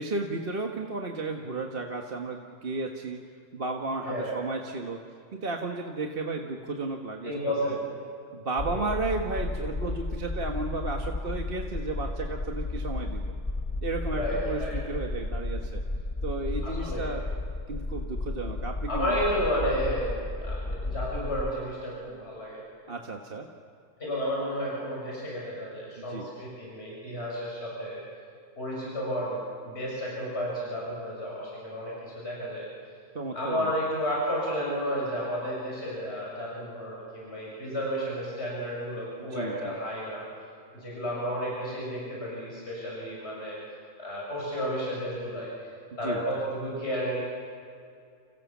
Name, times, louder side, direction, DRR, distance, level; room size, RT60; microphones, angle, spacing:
voice 1, 0.0-3.2 3.5-5.0 5.3-7.3 7.7-7.8 8.3-13.3 13.8-15.8 16.2-17.3 17.7-19.4 22.9-23.5 26.1-26.3 33.2-33.7 39.3-39.8 46.0-46.2, right 3 dB, 40° right, 2 dB, 1.6 m, -33 dB
voice 2, 4.0-4.4 7.2-7.9 8.6-8.9 14.1-14.8 16.6-17.1 18.9-22.6 24.0-28.0 28.6-29.4 29.6-32.7 33.3-40.2 40.7-43.6 44.0-45.5 46.0-47.2, equal, 45° left, -4 dB, 7.4 m, -32 dB
sound 1, 8.6-21.5, left 2 dB, 25° left, 1.1 m, -33 dB
29.5 x 27.5 x 7.3 m, 2.3 s
omnidirectional pair, 1.5 m